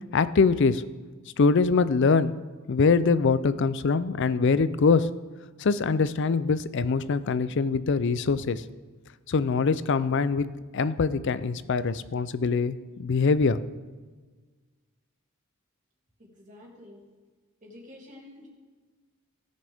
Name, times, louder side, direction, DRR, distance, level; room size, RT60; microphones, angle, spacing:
voice 1, 0.1-0.8 1.4-2.3 2.7-5.1 5.6-8.6 9.3-10.4 10.7-13.6, left 4 dB, 55° left, 14 dB, 0.4 m, -23 dB
voice 2, 16.2-17.0 17.6-18.5, left 1 dB, 35° right, -2 dB, 2.7 m, -49 dB
17.5 x 6.6 x 3.5 m, 1.4 s
head